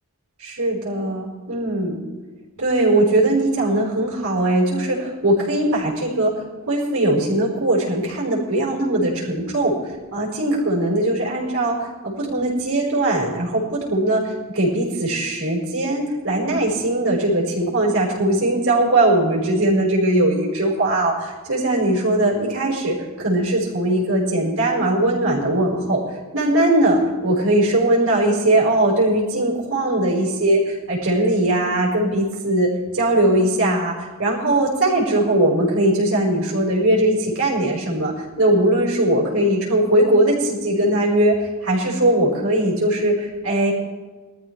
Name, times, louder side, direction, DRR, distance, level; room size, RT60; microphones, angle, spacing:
voice 1, 0.4-2.0 2.6-6.3 6.7-9.8 10.1-26.0 26.3-32.7 32.9-41.3 41.6-43.7, right 1 dB, 80° right, -7 dB, 4.9 m, -20 dB
21.5 x 13.5 x 3.3 m, 1.3 s
head